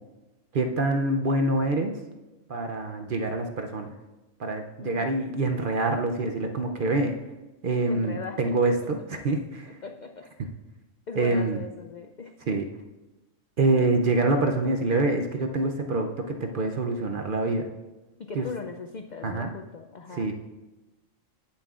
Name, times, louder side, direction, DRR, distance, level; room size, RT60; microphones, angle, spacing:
voice 1, 0.5-2.0 2.5-3.9 4.4-7.2 7.6-9.7 11.2-11.6 12.5-12.6 13.6-17.7 18.4-18.5 19.2-19.5 20.2-20.3, right 2 dB, 55° right, 4 dB, 0.7 m, -26 dB
voice 2, 4.8-5.1 7.9-8.7 9.7-10.3 11.1-12.6 18.2-20.3, left 5 dB, 70° left, 4 dB, 0.4 m, -39 dB
16.5 x 7.4 x 2.4 m, 1.1 s
omnidirectional pair, 1.4 m